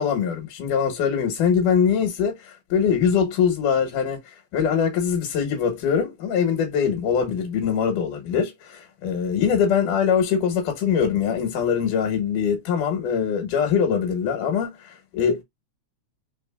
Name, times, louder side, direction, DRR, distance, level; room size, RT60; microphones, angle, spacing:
voice 1, 0.0-15.4, left 7 dB, 80° left, 2.8 m, -23 dB
5.1 x 3.6 x 2.2 m
omnidirectional pair, 3.6 m